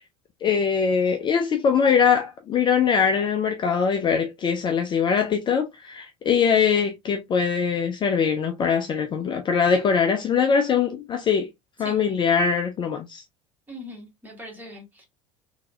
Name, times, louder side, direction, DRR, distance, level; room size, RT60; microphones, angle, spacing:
voice 1, 0.4-11.5 11.8-13.2, left 6 dB, 30° left, 0.5 m, -22 dB
voice 2, 13.7-15.0, left 1 dB, 10° right, 1.8 m, -40 dB
3.8 x 2.8 x 2.4 m
figure-of-eight pair, 65°, 16 cm